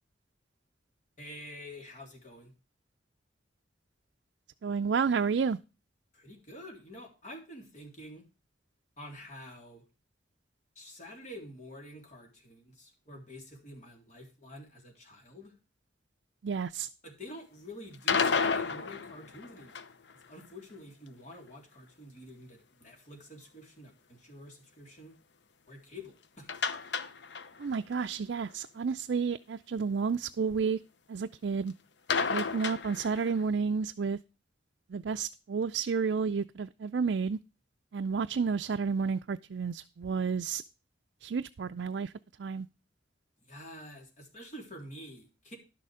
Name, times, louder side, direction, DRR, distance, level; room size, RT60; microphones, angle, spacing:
voice 1, 1.2-2.5 6.1-8.2 9.0-9.8 10.7-15.5 17.0-19.8 20.3-25.1 25.7-26.5 43.5-45.6, left 1 dB, 40° left, 2 dB, 3.4 m, -48 dB
voice 2, 4.6-5.6 16.4-16.9 27.6-30.8 31.1-31.7 32.3-34.2 34.9-37.4 37.9-40.6 41.2-42.1 42.4-42.7, right 5 dB, 65° right, 9 dB, 0.4 m, -31 dB
sound 1, 17.9-20.1 26.5-27.7 28.0-28.1 28.5-28.6 32.1-33.4, left 5 dB, 65° left, 0.8 m, -31 dB
11.5 x 6.8 x 4.8 m, 0.30 s
head